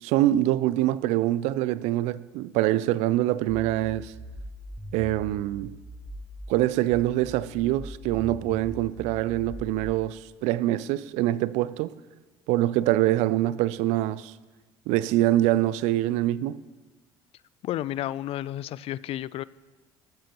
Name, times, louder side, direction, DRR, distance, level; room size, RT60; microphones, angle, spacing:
voice 1, 0.0-4.1 4.9-5.7 6.5-11.9 12.5-14.3 14.9-16.6, right 15 dB, 70° right, 0.4 m, -24 dB
sound 1, 3.5-6.5 6.9-9.9, equal, 5° right, 1.2 m, -41 dB
voice 2, 17.6-19.4, left 13 dB, 55° left, 0.4 m, -31 dB
13.5 x 12.5 x 3.0 m
hypercardioid pair, 70°, 12 cm